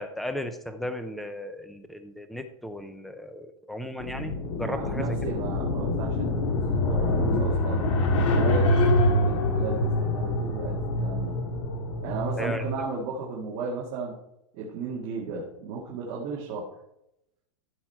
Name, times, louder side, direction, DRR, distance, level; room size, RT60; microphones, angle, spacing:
voice 1, 0.0-5.3 12.4-12.6, left 1 dB, ahead, 9 dB, 0.4 m, -35 dB
sound 1, 4.0-12.8, left 1 dB, 65° left, 2.3 m, -25 dB
voice 2, 4.6-6.4 6.8-7.9 8.3-11.3 12.0-14.1 14.5-16.7, right 4 dB, 35° right, -4 dB, 1.9 m, -35 dB
14.5 x 6.1 x 4.5 m, 0.83 s
supercardioid pair, 170°, 17 cm